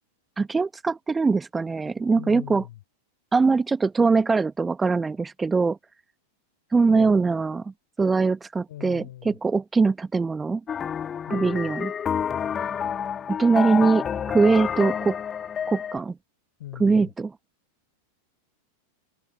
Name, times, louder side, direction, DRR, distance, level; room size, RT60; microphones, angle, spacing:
voice 1, 0.4-2.6 3.3-5.8 6.7-7.7 8.0-10.6 11.3-11.9 13.3-15.2 15.7-16.2 16.8-17.3, right 4 dB, 15° right, 1.4 m, -22 dB
voice 2, 2.2-2.8 6.9-7.2 8.7-9.4 11.3-11.7 16.6-17.1, left 14 dB, 55° left, 6.0 m, -40 dB
sound 1, 10.7-16.0, left 8 dB, 25° left, 2.4 m, -29 dB
figure-of-eight pair, 90°, 0 cm